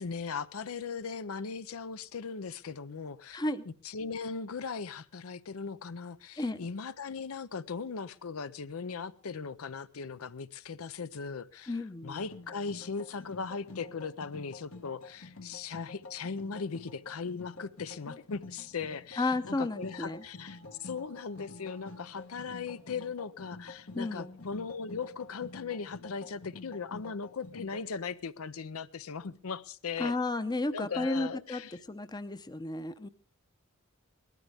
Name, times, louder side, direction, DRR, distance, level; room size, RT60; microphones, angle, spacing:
voice 1, 0.0-11.8 12.0-30.1 30.7-31.8, left 5 dB, 85° left, 14 dB, 0.6 m, -38 dB
voice 2, 3.3-3.7 6.4-6.6 11.7-12.2 19.2-20.2 23.9-24.4 30.0-31.6 31.9-33.1, left 2 dB, 20° left, 12 dB, 0.6 m, -33 dB
sound 1, 12.0-27.8, left 3 dB, 70° left, 1.2 m, -48 dB
19.5 x 13.0 x 3.5 m, 0.37 s
head